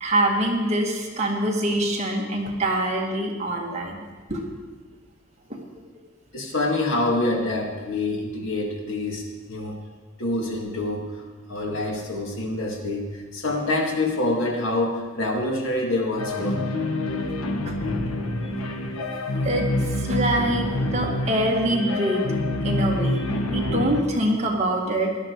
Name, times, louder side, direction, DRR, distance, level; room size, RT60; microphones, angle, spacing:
voice 1, 0.0-4.4 5.5-5.8 17.7-17.8 19.4-22.2 22.6-25.2, right 1 dB, 30° right, -1 dB, 1.9 m, -25 dB
voice 2, 6.3-9.8 10.2-11.2 11.5-16.6, left 2 dB, 70° left, 1 dB, 2.3 m, -26 dB
sound 1, 16.2-24.0, left 1 dB, 90° left, 1.3 m, -27 dB
17.0 x 12.0 x 4.7 m, 1.3 s
head